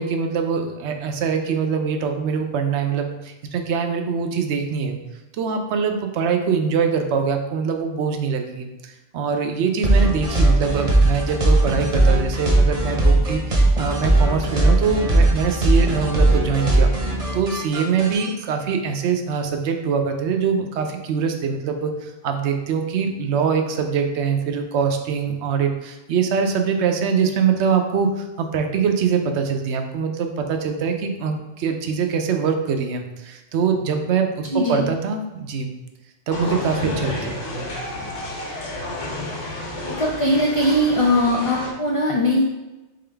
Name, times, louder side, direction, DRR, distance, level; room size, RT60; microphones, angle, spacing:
voice 1, 0.0-5.0 5.4-16.9 17.3-35.7 36.3-37.7, right 6 dB, 75° right, 5 dB, 0.9 m, -23 dB
sound 1, 9.8-18.2, right 2 dB, 35° right, 0.9 m, -18 dB
voice 2, 34.5-34.8 39.9-42.4, left 1 dB, 45° left, -3 dB, 0.4 m, -20 dB
sound 2, 36.3-41.7, left 2 dB, 80° left, 1.3 m, -30 dB
3.8 x 3.8 x 3.3 m, 1.0 s
omnidirectional pair, 1.2 m